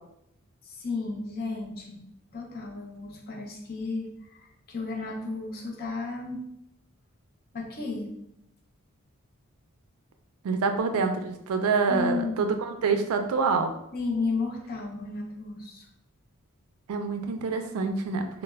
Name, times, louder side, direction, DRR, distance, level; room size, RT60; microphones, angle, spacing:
voice 1, 0.6-2.0 2.3-6.5 7.5-8.2 11.9-12.5 13.9-15.9, left 3 dB, 45° left, 0 dB, 0.5 m, -33 dB
voice 2, 10.4-13.7 16.9-18.4, right 4 dB, 80° right, 6 dB, 0.3 m, -26 dB
2.1 x 2.0 x 3.3 m, 0.79 s
head